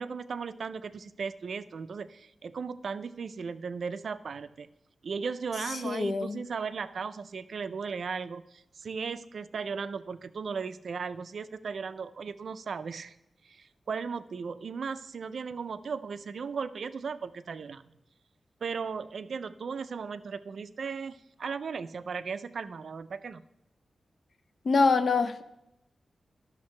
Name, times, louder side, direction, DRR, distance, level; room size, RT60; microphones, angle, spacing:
voice 1, 0.0-4.7 5.0-13.1 13.4-17.8 18.6-23.4, right 5 dB, 65° right, 13 dB, 0.3 m, -36 dB
voice 2, 5.8-6.4 24.6-25.4, left 4 dB, 55° left, 11 dB, 0.5 m, -25 dB
11.5 x 6.4 x 3.2 m, 0.86 s
wide cardioid pair, 145°, 0 cm